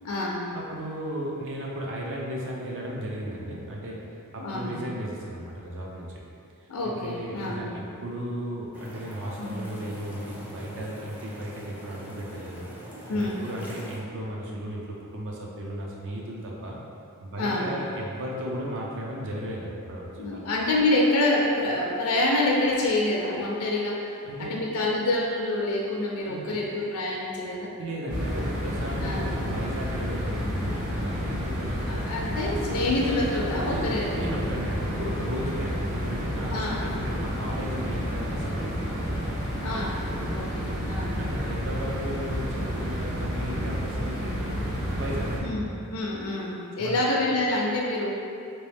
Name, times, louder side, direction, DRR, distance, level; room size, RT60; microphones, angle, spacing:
voice 1, 0.0-0.5 4.4-4.8 6.7-7.7 9.4-9.6 13.1-13.4 17.4-17.7 20.2-24.1 24.4-27.7 29.0-29.3 31.9-34.2 36.5-37.0 39.6-41.2 45.4-48.2, left 2 dB, 70° left, -2 dB, 0.5 m, -27 dB
voice 2, 0.5-4.0 4.3-6.1 6.8-12.7 13.1-16.8 17.2-20.5 24.2-24.5 26.2-26.6 27.8-32.1 32.6-32.7 33.7-39.3 41.2-44.5 44.9-45.7 46.8-47.0, equal, 55° right, -3 dB, 0.6 m, -35 dB
sound 1, 8.7-14.0, equal, 5° right, 0.5 m, -43 dB
sound 2, 28.1-45.4, equal, 35° right, 0.9 m, -30 dB
3.1 x 3.0 x 3.3 m, 2.5 s
head